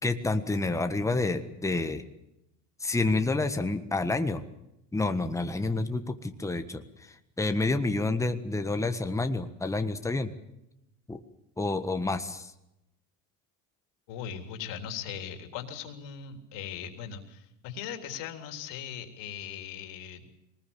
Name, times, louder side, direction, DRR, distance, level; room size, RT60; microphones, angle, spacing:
voice 1, 0.0-2.0 2.8-4.4 4.9-10.3 11.1-11.2 11.6-12.5, left 2 dB, 5° left, 7 dB, 1.5 m, -29 dB
voice 2, 14.1-20.2, left 8 dB, 60° left, 5 dB, 3.7 m, -39 dB
23.0 x 20.0 x 7.3 m, 0.86 s
supercardioid pair, 95°, 48 cm